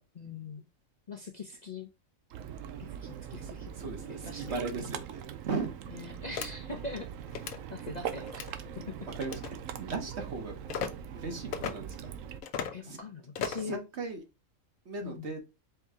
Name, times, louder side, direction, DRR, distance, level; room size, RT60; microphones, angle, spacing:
voice 1, 0.1-0.6 1.1-1.9 2.8-4.6 5.9-7.1 7.7-8.5 12.7-13.8 15.0-15.3, left 3 dB, 40° left, 0.7 m, -42 dB
Ocean, 2.3-12.4, right 8 dB, 75° right, 1.0 m, -41 dB
voice 2, 3.4-5.7 9.1-9.4 9.9-12.2 12.8-13.0 13.6-14.2 14.8-15.4, right 4 dB, 55° right, 1.4 m, -38 dB
sound 1, 6.4-6.5 7.3-7.6 8.3-8.5 9.2-9.5 10.7-10.9 11.5-11.7 12.4-12.8 13.4-13.7, left 7 dB, 80° left, 1.1 m, -35 dB
4.6 x 2.9 x 3.5 m
omnidirectional pair, 1.4 m